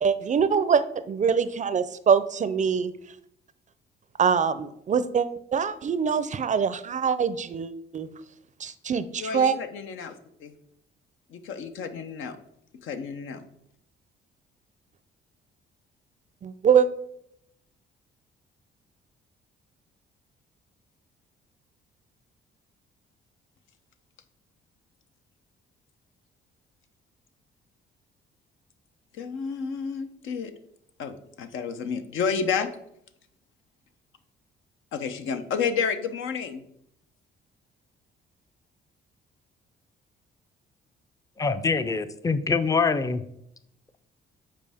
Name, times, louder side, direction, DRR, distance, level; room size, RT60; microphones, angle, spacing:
voice 1, 0.0-2.9 4.2-8.1 8.6-9.6 16.4-16.9, right 6 dB, 40° right, 14 dB, 0.4 m, -24 dB
voice 2, 9.2-10.5 11.3-12.4 12.7-13.4 29.1-30.5 31.0-32.7 34.9-36.6, left 6 dB, 80° left, 8 dB, 0.7 m, -30 dB
voice 3, 41.4-43.2, left 4 dB, 15° left, 12 dB, 0.5 m, -24 dB
7.5 x 4.6 x 3.4 m, 0.74 s
cardioid pair, 90°, 20 cm